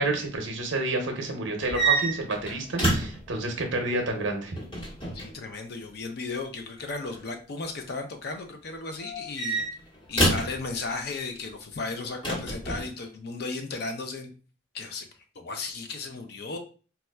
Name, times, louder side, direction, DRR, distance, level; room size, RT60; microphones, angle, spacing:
voice 1, 0.0-4.5, right 2 dB, 70° right, 3 dB, 0.7 m, -29 dB
sound 1, 1.6-3.3 4.6-5.3 6.8-7.2 9.0-10.6 12.2-12.9, right 2 dB, 25° left, 1.2 m, -27 dB
voice 2, 5.1-9.6 10.1-14.3 14.7-15.1 15.4-16.6, left 3 dB, 55° left, 6 dB, 0.5 m, -35 dB
4.1 x 2.3 x 2.2 m, 0.38 s
head